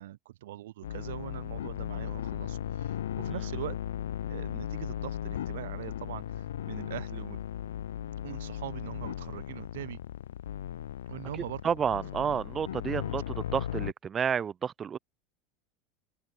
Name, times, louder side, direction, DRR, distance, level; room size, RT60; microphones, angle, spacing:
voice 1, 0.0-3.8 4.3-7.4 8.2-10.0 11.1-11.6, right 15 dB, 65° right, 0.6 m, -42 dB
sound 1, 0.8-13.9, left 11 dB, 70° left, 0.3 m, -37 dB
voice 2, 11.6-15.0, right 7 dB, 30° right, 0.7 m, -30 dB
open air
figure-of-eight pair, 75°, 0 cm